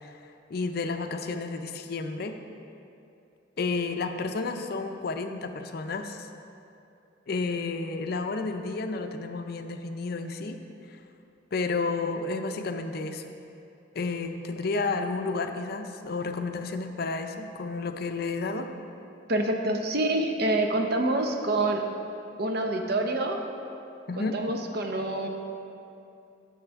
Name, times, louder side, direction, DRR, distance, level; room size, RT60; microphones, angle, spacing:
voice 1, 0.0-2.4 3.6-6.3 7.3-10.6 10.9-11.0 11.5-13.3 13.9-18.7 24.1-24.4, left 3 dB, 55° left, 7 dB, 0.5 m, -31 dB
voice 2, 19.3-21.9 22.4-23.4 24.2-25.3, right 2 dB, 55° right, 3 dB, 0.7 m, -27 dB
10.0 x 6.4 x 3.5 m, 2.7 s
head